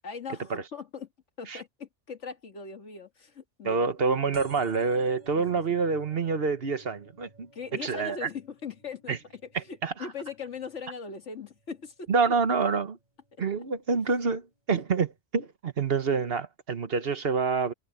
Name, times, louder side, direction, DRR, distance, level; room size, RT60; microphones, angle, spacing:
voice 1, 0.0-1.1 1.4-3.9 5.3-5.8 7.5-12.1 13.3-13.4, left 5 dB, 70° left, 2.0 m, -40 dB
voice 2, 3.6-8.3 9.1-9.2 9.5-9.9 12.1-13.0 13.4-17.7, right 5 dB, 55° right, 1.3 m, -27 dB
sound 1, 4.3-11.6 12.1-12.5 13.4-13.5 13.7-13.8 14.0-14.1, equal, 35° right, 3.5 m, -53 dB
omnidirectional pair, 1.3 m